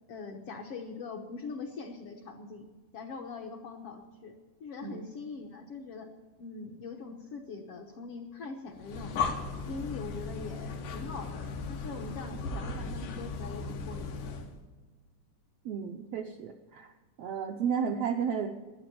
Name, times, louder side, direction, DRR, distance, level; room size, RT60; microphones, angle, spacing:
voice 1, 0.1-2.7 2.9-6.1 6.4-9.2 9.7-14.4, left 4 dB, 65° left, 2 dB, 1.5 m, -42 dB
Breathing, 8.8-14.5, left 4 dB, 80° left, 2.9 m, -36 dB
voice 2, 15.6-16.9 17.2-18.5, right 7 dB, 75° right, 4 dB, 1.4 m, -32 dB
12.0 x 9.8 x 8.5 m, 1.3 s
omnidirectional pair, 3.7 m